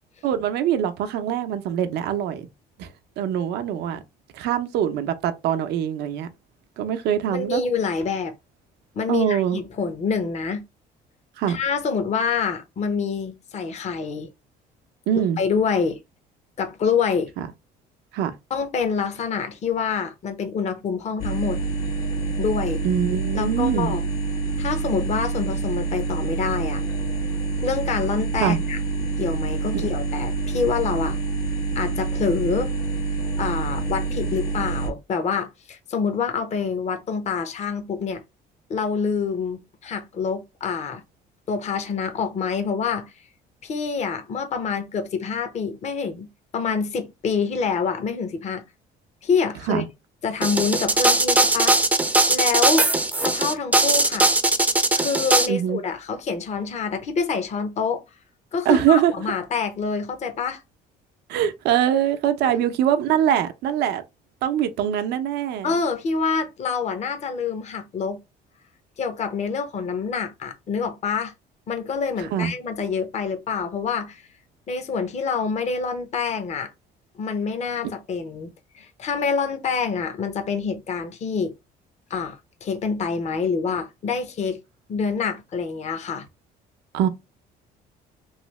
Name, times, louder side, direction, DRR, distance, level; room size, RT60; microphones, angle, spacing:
voice 1, 0.2-2.5 2.8-2.9 3.2-4.0 4.3-6.3 6.8-7.6 9.1-9.6 11.4-11.6 15.1-15.4 17.4-17.5 18.1-18.3 22.8-24.0 28.4-28.6 29.7-29.9 49.7-49.8 55.5-55.8 58.7-59.1 61.3-64.0 64.4-65.7 72.2-72.5 86.9-87.1, right 10 dB, 80° right, 0.6 m, -23 dB
voice 2, 7.3-8.3 8.9-10.6 11.5-14.3 15.2-16.0 16.6-17.3 18.5-21.6 22.4-22.8 23.3-24.0 24.6-26.8 27.6-28.8 29.2-31.2 31.8-32.7 33.4-38.2 38.7-41.0 41.5-43.1 43.6-48.6 49.2-49.8 50.2-51.8 52.3-52.9 53.2-54.3 54.9-58.0 58.5-60.6 62.4-62.6 65.6-68.2 69.0-71.3 71.7-74.2 74.7-76.7 77.2-81.5 82.1-84.6 84.9-86.2, left 5 dB, 40° left, 0.7 m, -26 dB
sound 1, 21.2-34.9, right 3 dB, 65° left, 1.0 m, -27 dB
sound 2, 50.4-55.5, right 2 dB, 10° right, 0.5 m, -19 dB
3.1 x 2.7 x 3.1 m
cardioid pair, 110°, 17 cm